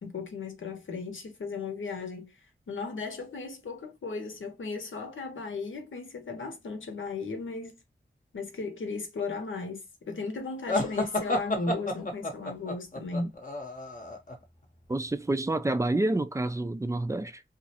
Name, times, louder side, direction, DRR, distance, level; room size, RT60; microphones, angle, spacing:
voice 1, 0.0-2.4 2.7-7.8 8.3-13.4, left 3 dB, 80° left, 0.7 m, -36 dB
sound 1, 10.7-14.4, left 1 dB, 40° left, 0.7 m, -31 dB
voice 2, 14.9-17.4, right 2 dB, 15° right, 0.3 m, -28 dB
2.4 x 2.0 x 2.7 m
cardioid pair, 40°, 20 cm